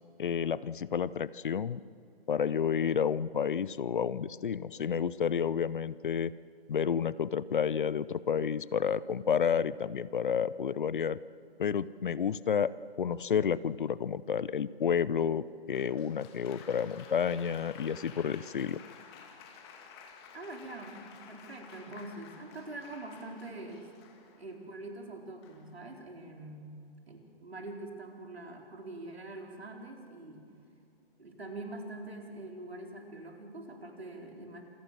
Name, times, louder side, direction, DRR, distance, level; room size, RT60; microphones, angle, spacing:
voice 1, 0.2-1.8 2.3-6.3 6.7-11.2 11.6-12.7 13.0-18.8, left 7 dB, 55° left, 19 dB, 0.7 m, -30 dB
Applause, 15.7-24.6 25.4-25.8, left 6 dB, 25° left, 2.1 m, -53 dB
voice 2, 20.3-23.9 24.4-30.5 31.2-34.6, right 2 dB, 80° right, 2 dB, 4.3 m, -44 dB
27.0 x 16.5 x 7.6 m, 2.5 s
figure-of-eight pair, 145°, 31 cm